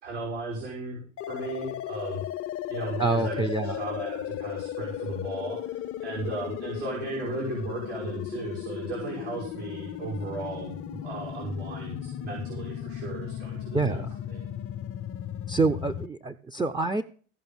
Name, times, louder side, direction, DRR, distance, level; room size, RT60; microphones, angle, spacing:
voice 1, 0.0-1.0 1.3-2.2 2.7-3.5 3.8-14.0 14.3-14.4, right 3 dB, 70° right, -2 dB, 5.2 m, -35 dB
sound 1, 1.2-16.1, left 11 dB, 40° left, 0.7 m, -36 dB
voice 2, 3.0-3.8 13.7-14.1 15.5-17.0, right 3 dB, 10° right, 6 dB, 0.7 m, -27 dB
15.5 x 5.6 x 7.2 m, 0.42 s
hypercardioid pair, 75°, 36 cm